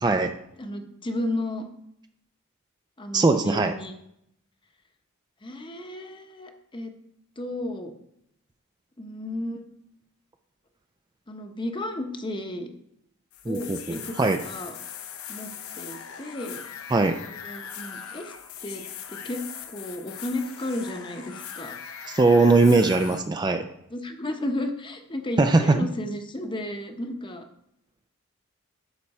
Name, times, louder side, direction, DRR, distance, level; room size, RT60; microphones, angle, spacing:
voice 1, 0.0-0.3 3.1-3.7 13.5-14.4 16.9-17.2 22.1-23.7 25.4-25.8, right 3 dB, 20° right, 6 dB, 0.4 m, -20 dB
voice 2, 0.6-1.6 3.0-3.9 5.4-6.9 7.4-7.9 9.0-9.6 11.3-12.7 13.4-14.1 14.4-14.8 15.3-16.6 17.3-18.3 18.6-18.8 19.1-19.4 19.7-21.8 23.9-27.4, left 1 dB, 20° left, 6 dB, 0.9 m, -33 dB
sound 1, 13.3-23.2, left 8 dB, 75° left, 0.8 m, -40 dB
11.0 x 5.6 x 4.2 m, 0.76 s
head